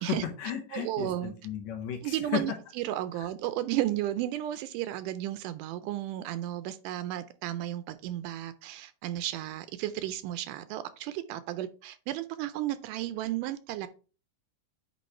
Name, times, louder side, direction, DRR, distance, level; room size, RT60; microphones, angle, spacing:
voice 1, 0.0-2.4 3.2-3.3, left 9 dB, 70° left, 3 dB, 2.0 m, -34 dB
voice 2, 0.7-1.3 2.0-13.9, right 13 dB, 80° right, 13 dB, 2.0 m, -33 dB
8.5 x 3.1 x 4.2 m, 0.35 s
omnidirectional pair, 3.8 m